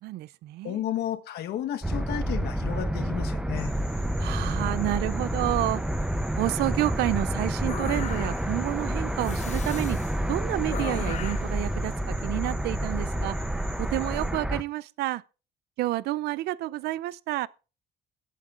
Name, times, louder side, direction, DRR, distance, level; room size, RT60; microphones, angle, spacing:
voice 1, 0.0-0.8 4.2-5.8 6.4-10.0 10.3-13.4 13.8-15.2 15.8-17.5, right 17 dB, 75° right, 0.4 m, -29 dB
voice 2, 0.6-3.7, left 11 dB, 70° left, 1.2 m, -32 dB
sound 1, 1.8-14.6, right 1 dB, 5° right, 0.6 m, -29 dB
sound 2, 3.5-14.3, left 1 dB, 20° right, 6.8 m, -49 dB
sound 3, 7.7-8.6 9.2-10.1 10.7-11.5, left 9 dB, 45° left, 0.7 m, -38 dB
21.0 x 8.5 x 2.5 m
cardioid pair, 110°, 17 cm